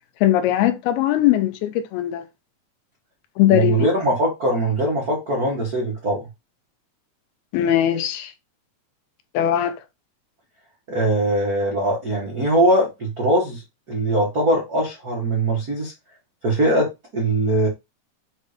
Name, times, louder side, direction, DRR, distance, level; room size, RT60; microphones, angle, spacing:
voice 1, 0.2-2.2 3.4-3.9 7.5-8.3 9.3-9.8, left 12 dB, 80° left, 2.6 m, -20 dB
voice 2, 3.5-6.3 10.9-13.6 13.9-15.9 16.4-17.7, right 1 dB, 65° right, 0.9 m, -21 dB
7.3 x 2.7 x 5.0 m
omnidirectional pair, 4.6 m